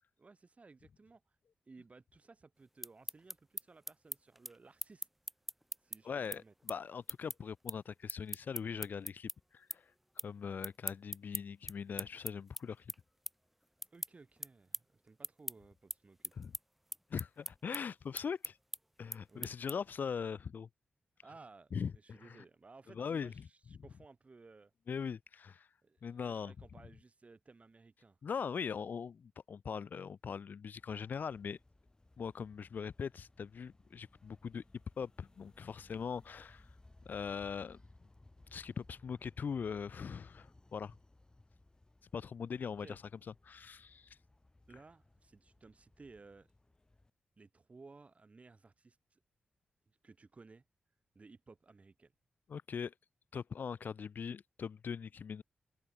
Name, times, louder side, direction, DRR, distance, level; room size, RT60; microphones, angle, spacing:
voice 1, 0.0-1.4 1.7-5.1 5.8-6.5 13.9-16.5 19.3-19.5 21.2-24.7 25.8-28.2 42.8-43.0 44.7-46.5 47.4-49.2 49.9-50.6 51.2-52.1, right 3 dB, 40° right, 3.8 m, -58 dB
sound 1, 2.6-9.4 9.7-10.3 10.6-20.0, equal, 5° right, 0.8 m, -43 dB
voice 2, 6.0-9.8 10.2-12.9 16.4-16.5 17.1-18.6 19.0-20.7 21.7-22.4 22.9-23.5 24.9-25.7 26.0-26.5 28.2-29.2 29.5-31.6 32.2-34.6 35.0-36.7 37.0-37.8 38.5-40.9 42.1-43.0 43.4-44.2 52.5-52.9 53.3-55.4, left 6 dB, 65° left, 0.6 m, -41 dB
sound 2, 30.8-47.1, left 2 dB, 25° left, 4.9 m, -63 dB
open air
cardioid pair, 55°, 3 cm